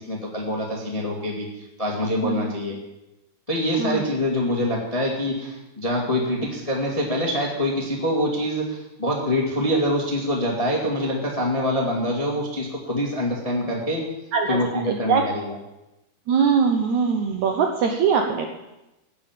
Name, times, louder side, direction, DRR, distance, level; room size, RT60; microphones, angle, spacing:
voice 1, 0.0-2.8 3.5-14.0 14.5-15.6, left 1 dB, 20° left, -1 dB, 0.9 m, -25 dB
voice 2, 14.9-15.2 16.3-18.5, right 6 dB, 70° right, 3 dB, 1.8 m, -22 dB
16.5 x 6.7 x 7.4 m, 0.96 s
omnidirectional pair, 4.3 m